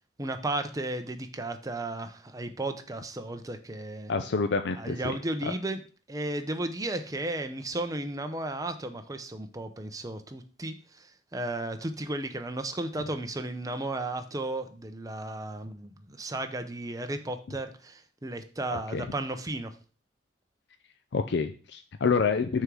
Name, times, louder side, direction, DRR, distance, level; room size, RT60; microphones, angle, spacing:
voice 1, 0.2-4.1 4.8-5.8 6.1-11.1 11.3-19.7, right 2 dB, 20° right, 7 dB, 0.7 m, -34 dB
voice 2, 4.1-5.2 18.7-19.1 21.1-22.6, left 5 dB, 65° left, 8 dB, 0.5 m, -28 dB
6.4 x 3.7 x 6.1 m, 0.38 s
head